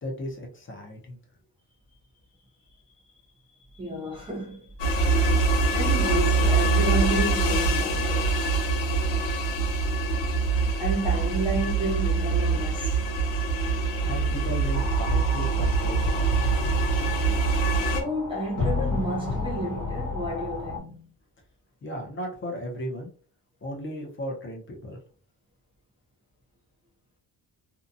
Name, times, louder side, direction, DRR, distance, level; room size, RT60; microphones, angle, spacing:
voice 1, 0.0-1.2 14.0-16.5 21.8-23.1 23.6-25.0, equal, 25° left, 0.7 m, -35 dB
voice 2, 3.7-4.7 5.1-8.4 10.8-13.0 17.7-21.1, right 1 dB, 15° right, 0.4 m, -31 dB
sound 1, 4.8-18.0, right 3 dB, 80° left, 0.8 m, -24 dB
sound 2, 14.7-20.8, left 3 dB, 50° left, 1.2 m, -32 dB
2.7 x 2.2 x 2.5 m
cardioid pair, 140°, 44 cm